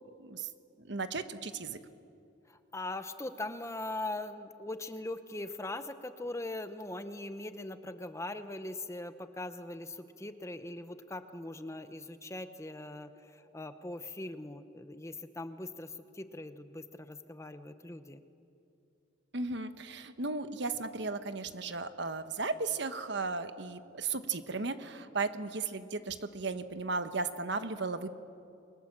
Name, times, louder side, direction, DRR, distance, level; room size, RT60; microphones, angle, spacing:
voice 1, 0.2-0.5 0.8-1.8 19.3-28.1, right 4 dB, 60° right, 10 dB, 1.2 m, -35 dB
voice 2, 2.5-18.2, left 2 dB, 15° left, 10 dB, 0.9 m, -41 dB
29.0 x 23.0 x 7.5 m, 2.6 s
head